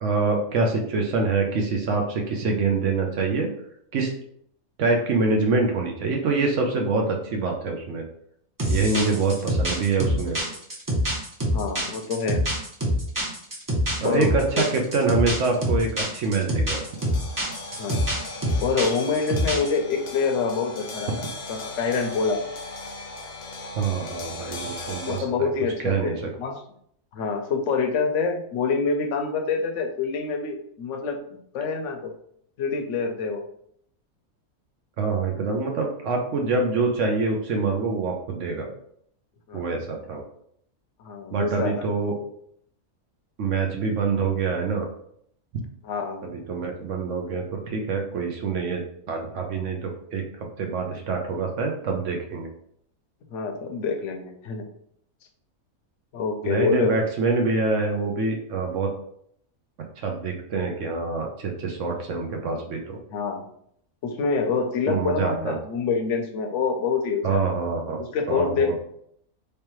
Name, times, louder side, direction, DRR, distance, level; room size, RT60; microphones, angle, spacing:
voice 1, 0.0-3.5 3.9-4.1 4.8-8.0 8.7-10.4 14.0-16.8 23.7-25.5 25.8-26.3 35.0-38.7 39.5-40.2 41.3-42.2 43.4-44.9 46.2-48.8 49.1-50.2 50.6-52.5 56.4-58.9 60.0-63.0 64.9-65.6 67.2-68.0 68.3-68.7, right 4 dB, 65° right, 1 dB, 0.9 m, -25 dB
sound 1, 8.6-19.8, equal, 20° right, 0.5 m, -26 dB
voice 2, 11.5-12.4 14.0-14.7 17.8-18.0 18.6-22.4 25.0-26.6 27.1-32.1 32.6-33.4 39.5-39.7 41.0-41.9 45.8-46.2 53.3-54.6 56.1-57.0 63.1-63.4 64.0-67.5 68.0-68.7, left 5 dB, 65° left, 5 dB, 0.9 m, -26 dB
sound 2, 16.7-25.2, left 3 dB, 80° left, 0.4 m, -37 dB
3.3 x 3.2 x 3.0 m, 0.68 s
omnidirectional pair, 1.5 m